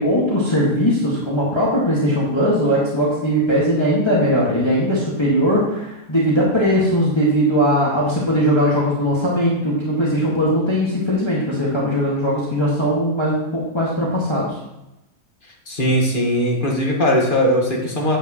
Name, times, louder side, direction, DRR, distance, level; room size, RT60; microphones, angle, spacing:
voice 1, 0.0-14.5, equal, 20° left, -6 dB, 2.0 m, -19 dB
voice 2, 15.7-18.2, equal, 35° left, -1 dB, 1.9 m, -19 dB
9.8 x 9.0 x 3.1 m, 0.91 s
omnidirectional pair, 1.6 m